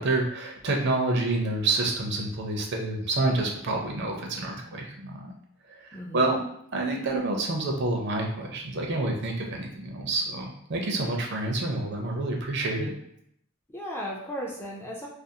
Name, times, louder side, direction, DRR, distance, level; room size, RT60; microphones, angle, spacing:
voice 1, 0.0-5.3 5.7-6.4 6.7-12.9, right 2 dB, 50° right, 1 dB, 0.5 m, -28 dB
voice 2, 5.9-6.3 13.7-15.1, equal, 10° left, -3 dB, 0.3 m, -36 dB
2.5 x 2.3 x 2.7 m, 0.70 s
head